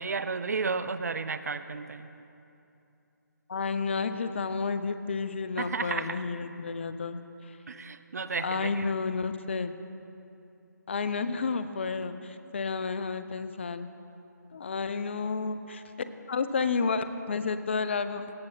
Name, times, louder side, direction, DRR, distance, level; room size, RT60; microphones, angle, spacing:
voice 1, 0.0-2.1 5.6-6.2 7.7-8.9, right 4 dB, 55° right, 13 dB, 0.4 m, -33 dB
voice 2, 3.5-7.2 7.5-7.6 8.4-9.7 10.9-13.9 14.5-18.3, left 4 dB, 35° left, 11 dB, 0.4 m, -31 dB
17.0 x 6.2 x 4.2 m, 2.7 s
figure-of-eight pair, 150°, 10 cm